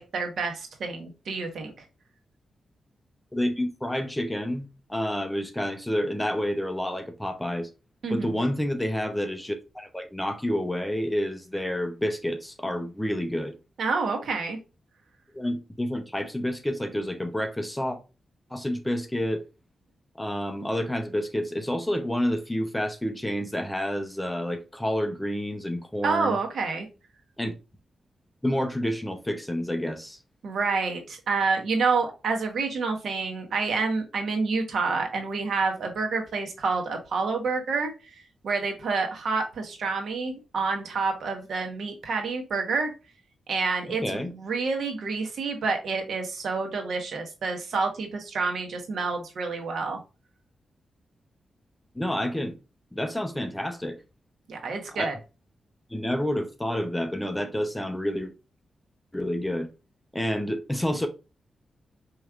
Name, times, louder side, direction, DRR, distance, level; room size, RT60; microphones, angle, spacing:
voice 1, 0.0-1.7 8.0-8.4 13.8-14.6 26.0-26.9 30.4-37.9 38.4-42.9 43.5-50.0 54.5-55.1, right 4 dB, 75° right, 1.1 m, -28 dB
voice 2, 3.3-7.7 8.1-13.6 15.3-18.0 18.5-19.4 20.2-26.4 27.4-27.5 28.4-30.2 43.9-44.3 52.0-52.5 52.9-54.0 54.9-55.1 55.9-58.3 59.1-59.7 60.1-61.1, equal, 10° left, 0.6 m, -29 dB
4.7 x 3.1 x 2.4 m
wide cardioid pair, 105°, 0 cm